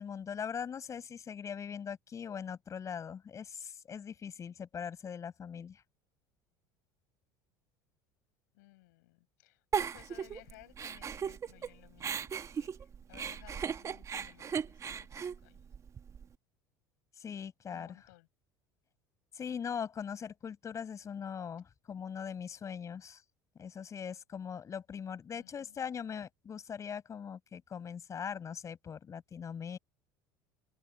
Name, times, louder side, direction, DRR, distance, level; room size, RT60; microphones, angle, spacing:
voice 1, 0.0-5.8 17.2-18.0 19.3-23.2 23.6-29.8, left 7 dB, 35° left, 5.9 m, -41 dB
voice 2, 8.5-15.6 17.7-18.3 25.3-25.8, left 22 dB, 80° left, 7.8 m, -59 dB
Giggle, 9.7-11.7 12.0-16.2, right 7 dB, 35° right, 1.7 m, -37 dB
open air
supercardioid pair, 90°, 9 cm